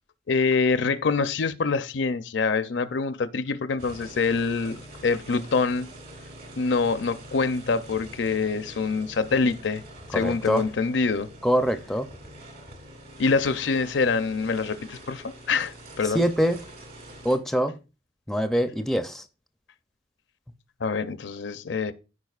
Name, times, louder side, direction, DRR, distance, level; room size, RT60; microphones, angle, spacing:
voice 1, 0.3-5.9 6.6-9.8 10.1-11.3 13.2-16.2 20.8-21.9, left 4 dB, 70° left, 0.5 m, -25 dB
sound 1, 3.8-17.4, right 1 dB, 55° right, 2.2 m, -45 dB
voice 2, 10.1-10.6 11.4-12.1 16.1-16.6 17.2-17.7 18.3-19.2, equal, ahead, 0.5 m, -24 dB
13.5 x 4.8 x 2.4 m
head